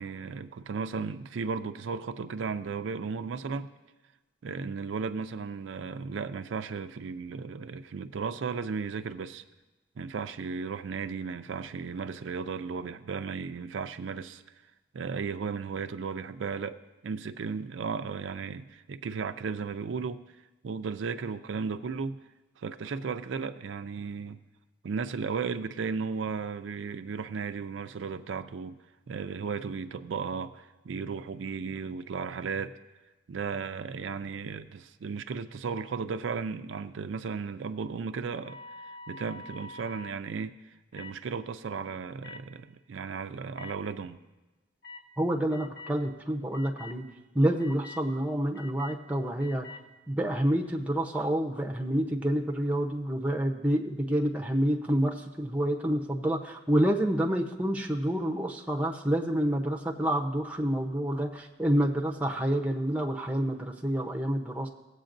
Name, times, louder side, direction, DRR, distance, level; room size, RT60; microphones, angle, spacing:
voice 1, 0.0-3.7 4.4-9.4 10.0-14.4 14.9-20.2 20.6-22.2 22.6-24.4 24.8-28.8 29.1-32.8 33.3-38.6 39.1-40.6 40.9-44.2, right 5 dB, 80° right, 10 dB, 0.4 m, -35 dB
sound 1, 38.3-40.2 40.9-41.2 42.2-42.4 43.5-43.7 44.8-45.0 45.5-46.0 46.5-47.0 47.6-48.0 48.5-49.0 49.4-49.8, left 3 dB, 55° left, 0.9 m, -46 dB
voice 2, 45.2-47.0 47.3-49.7 50.1-64.7, right 1 dB, 5° right, 2 dB, 0.7 m, -28 dB
17.5 x 8.0 x 2.6 m, 1.1 s
head